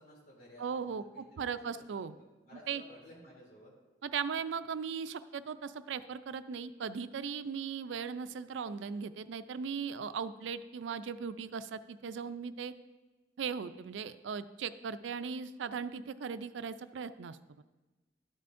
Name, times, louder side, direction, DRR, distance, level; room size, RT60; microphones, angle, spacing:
voice 1, 0.0-3.7, left 1 dB, 55° left, -3 dB, 2.8 m, -56 dB
voice 2, 0.6-2.1 2.7-2.8 4.0-12.7 13.4-17.6, right 6 dB, 80° right, 13 dB, 0.4 m, -38 dB
12.0 x 9.0 x 2.6 m, 1.2 s
head